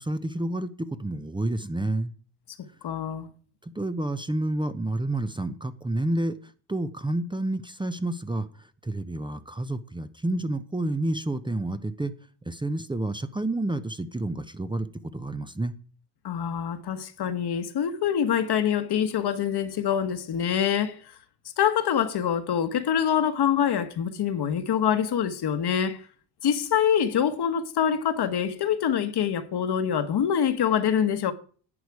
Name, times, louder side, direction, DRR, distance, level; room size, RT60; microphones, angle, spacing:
voice 1, 0.0-2.1 3.8-6.3 6.7-8.5 8.8-12.1 12.5-14.9 15.1-15.7, right 1 dB, 10° right, 0.8 m, -29 dB
voice 2, 2.8-3.3 16.2-21.0 21.6-26.0 26.4-31.3, left 8 dB, 55° left, 1.4 m, -25 dB
11.0 x 8.1 x 4.8 m
supercardioid pair, 75°, 46 cm